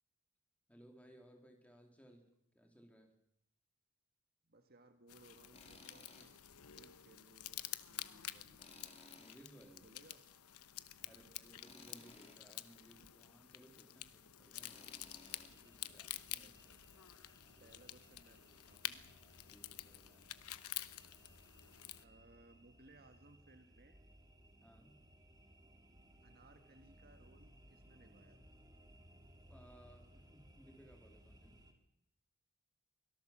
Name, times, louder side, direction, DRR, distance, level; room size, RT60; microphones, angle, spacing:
voice 1, 0.7-2.2 2.5-3.1 9.1-9.9 11.1-15.2 15.5-16.5 17.6-17.8 19.5-20.3 24.6-25.0 29.5-31.6, equal, 5° left, 2 dB, 3.7 m, -62 dB
voice 2, 4.4-6.4 6.7-7.6 7.9-8.6 9.8-10.2 11.0-11.3 16.3-16.8 17.6-19.1 22.0-24.0 26.2-28.5, right 2 dB, 45° right, 7 dB, 1.6 m, -64 dB
sound 1, 5.1-22.0, left 13 dB, 90° left, 1.0 m, -50 dB
Tools, 5.5-6.3 6.7-6.8 8.6-9.7 11.6-12.4 14.6-15.5, left 3 dB, 30° left, 3.2 m, -58 dB
sound 2, 14.7-31.7, right 1 dB, 15° right, 2.6 m, -64 dB
24.0 x 17.5 x 7.4 m, 0.78 s
head